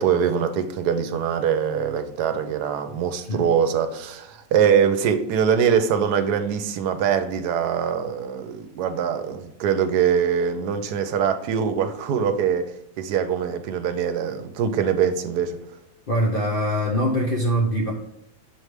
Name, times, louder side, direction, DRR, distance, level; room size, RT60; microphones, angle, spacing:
voice 1, 0.0-12.7 13.0-15.6, right 7 dB, 75° right, 1.1 m, -23 dB
voice 2, 16.1-17.9, equal, 50° left, 0.6 m, -23 dB
6.5 x 3.2 x 4.8 m
omnidirectional pair, 1.8 m